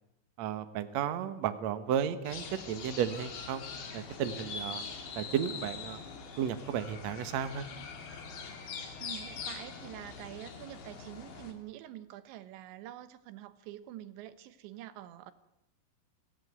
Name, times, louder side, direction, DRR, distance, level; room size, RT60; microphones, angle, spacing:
voice 1, 0.4-3.6 3.9-4.9 5.1-6.0 6.4-7.7, right 9 dB, 70° right, 11 dB, 1.7 m, -33 dB
sound 1, 2.2-11.5, left 5 dB, 75° left, 5.2 m, -43 dB
voice 2, 9.0-15.3, right 13 dB, 90° right, 13 dB, 3.5 m, -46 dB
22.5 x 17.0 x 9.5 m, 0.86 s
omnidirectional pair, 5.1 m